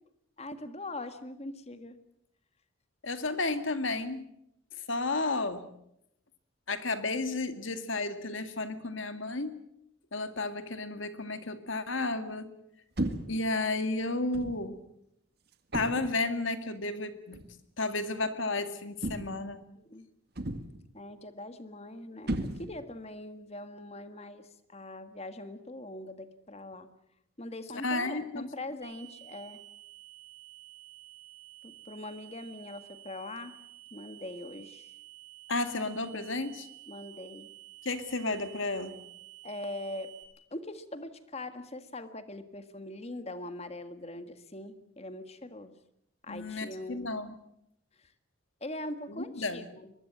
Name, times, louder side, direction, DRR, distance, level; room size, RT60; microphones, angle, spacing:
voice 1, 0.4-2.0 19.7-20.1 20.9-26.9 27.4-29.6 31.6-33.6 33.9-34.9 36.9-37.5 39.4-40.1 40.5-45.7 46.2-47.1 48.6-49.9, left 1 dB, 30° left, 10 dB, 1.7 m, -42 dB
voice 2, 3.0-4.2 4.9-5.7 6.7-9.6 10.1-12.5 13.3-14.8 15.7-17.4 17.8-19.6 27.8-28.5 35.5-36.7 37.8-39.0 46.3-47.3 49.1-49.6, left 2 dB, 70° left, 9 dB, 2.1 m, -32 dB
sound 1, 13.0-13.4 14.3-14.7 15.7-16.2 17.3-17.5 19.0-19.5 20.4-20.9 22.3-23.0, right 1 dB, 50° right, 1.8 m, -35 dB
sound 2, 28.8-40.2, right 18 dB, 15° right, 7.6 m, -51 dB
23.5 x 20.5 x 7.7 m, 0.77 s
head